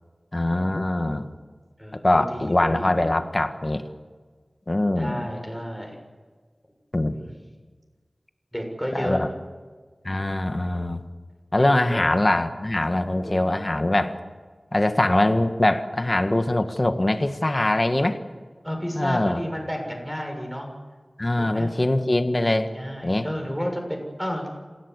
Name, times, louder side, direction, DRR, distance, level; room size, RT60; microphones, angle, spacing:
voice 1, 0.3-1.3 1.9-3.8 4.7-5.2 6.9-7.1 8.9-9.3 10.0-11.0 11.5-14.2 14.7-18.2 19.0-19.4 21.2-22.7 23.0-23.3, left 1 dB, 35° left, 7 dB, 1.8 m, -22 dB
voice 2, 1.8-3.1 5.0-5.9 7.0-7.3 8.5-9.2 11.6-12.0 13.1-13.6 18.6-20.7 21.4-21.7 22.5-24.5, equal, ahead, 1 dB, 7.0 m, -32 dB
28.0 x 17.0 x 8.3 m, 1.5 s
wide cardioid pair, 60°, 0 cm